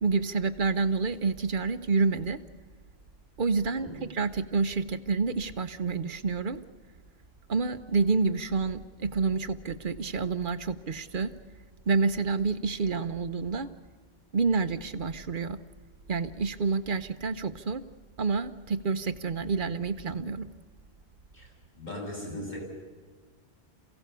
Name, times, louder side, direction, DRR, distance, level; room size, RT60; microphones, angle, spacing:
voice 1, 0.0-2.4 3.4-6.6 7.5-11.3 11.9-13.7 14.3-15.6 16.1-17.8 18.2-20.5, right 4 dB, 55° right, 11 dB, 1.0 m, -28 dB
voice 2, 21.7-22.6, left 1 dB, 45° left, -1 dB, 7.9 m, -38 dB
28.5 x 16.5 x 6.9 m, 1.4 s
omnidirectional pair, 1.1 m